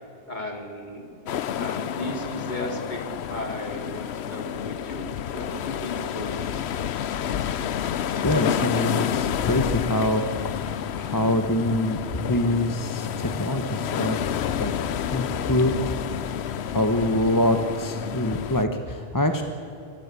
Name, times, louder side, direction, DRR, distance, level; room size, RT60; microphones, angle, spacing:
voice 1, 0.3-1.1 1.6-3.0 3.3-6.7, left 1 dB, 45° left, 3 dB, 3.6 m, -35 dB
sound 1, 1.3-18.6, left 9 dB, 80° left, 1.0 m, -29 dB
voice 2, 8.2-10.2 10.9-12.0 12.3-14.2 14.6-14.7 15.1-15.7 16.7-19.4, left 1 dB, 20° left, 6 dB, 1.2 m, -24 dB
25.5 x 22.0 x 8.4 m, 2.8 s
omnidirectional pair, 1.1 m